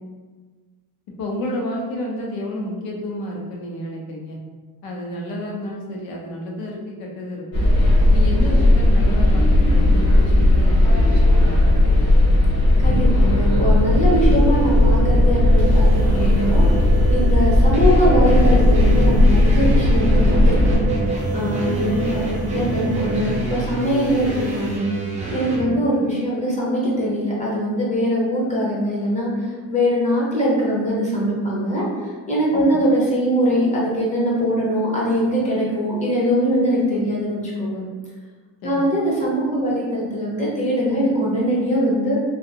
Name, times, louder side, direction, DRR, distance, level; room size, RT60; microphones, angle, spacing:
voice 1, 1.2-4.4 4.8-7.6 8.1-12.2 21.8-22.1 25.6-25.8 32.5-32.7 38.6-38.8, left 1 dB, 70° left, -1 dB, 0.7 m, -31 dB
sound 1, 7.5-20.7, left 1 dB, 40° left, 0.9 m, -15 dB
voice 2, 12.8-16.7 17.1-20.7 21.3-24.9 25.3-37.8 38.6-42.2, equal, 20° left, -6 dB, 0.6 m, -22 dB
sound 2, 12.8-24.8, right 2 dB, 60° right, 0.7 m, -27 dB
sound 3, 17.7-25.7, right 2 dB, 20° right, 0.4 m, -29 dB
2.4 x 2.4 x 2.7 m, 1.4 s
cardioid pair, 160°, 37 cm